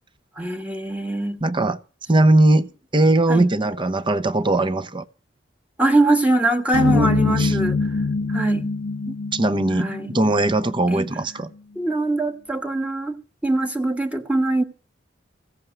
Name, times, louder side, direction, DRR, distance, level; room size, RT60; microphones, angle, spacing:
voice 1, 0.4-1.4 3.3-3.5 5.8-7.8 8.3-8.7 9.8-10.2 10.9-11.1 11.7-13.2 13.4-14.6, right 2 dB, 10° right, 1.5 m, -22 dB
voice 2, 1.4-1.8 2.1-5.0 6.9-7.1 7.4-7.6 9.1-11.5, right 2 dB, 25° right, 0.8 m, -20 dB
sound 1, 6.7-11.1, left 3 dB, 90° left, 0.6 m, -24 dB
16.0 x 7.1 x 9.1 m
head